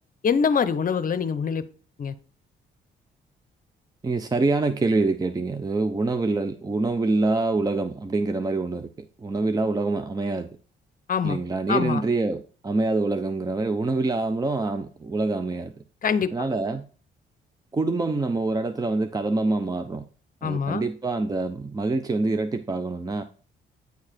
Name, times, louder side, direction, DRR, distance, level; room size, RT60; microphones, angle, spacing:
voice 1, 0.2-1.6 2.0-2.1 11.1-11.4 11.7-12.0 16.0-16.5 20.4-20.8, left 6 dB, 45° left, 13 dB, 0.8 m, -24 dB
voice 2, 4.0-8.9 9.2-10.5 11.2-15.7 16.3-16.8 17.7-20.0 20.4-23.2, right 3 dB, 20° right, 9 dB, 0.6 m, -25 dB
9.4 x 4.8 x 4.3 m, 0.39 s
cardioid pair, 90°, 20 cm